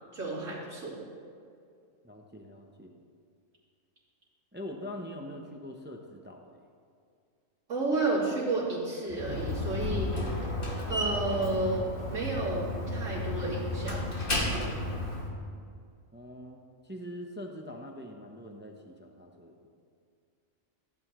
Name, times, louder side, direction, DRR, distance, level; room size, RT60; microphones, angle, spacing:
voice 1, 0.1-1.0 7.7-10.4 10.9-14.1, right 2 dB, 70° right, -8 dB, 3.4 m, -31 dB
voice 2, 2.0-2.9 4.5-6.5 16.1-19.7, left 1 dB, 10° right, 2 dB, 0.5 m, -43 dB
Slam, 9.1-15.3, left 1 dB, 45° left, 1.5 m, -33 dB
15.5 x 8.8 x 3.1 m, 2.3 s
omnidirectional pair, 1.4 m